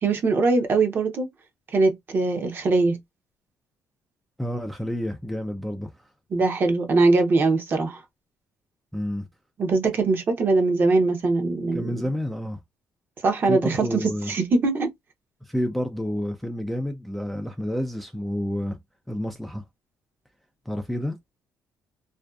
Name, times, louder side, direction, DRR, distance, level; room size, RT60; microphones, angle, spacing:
voice 1, 0.0-1.3 1.7-3.0 6.3-8.0 9.6-11.9 13.2-14.9, right 3 dB, 40° right, 0.7 m, -22 dB
voice 2, 4.4-6.0 8.9-9.3 11.7-12.6 13.5-14.4 15.4-18.8 19.1-19.6 20.7-21.2, equal, ahead, 0.3 m, -29 dB
2.5 x 2.2 x 2.2 m
cardioid pair, 120°, 6 cm